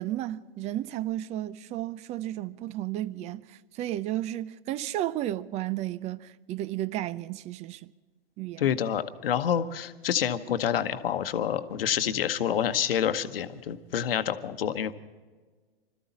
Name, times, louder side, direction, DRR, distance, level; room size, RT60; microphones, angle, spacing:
voice 1, 0.0-7.9 8.4-8.7, right 13 dB, 20° right, 0.5 m, -33 dB
voice 2, 8.6-14.9, left 9 dB, 65° left, 1.1 m, -28 dB
25.5 x 14.0 x 4.1 m
figure-of-eight pair, 110°, 31 cm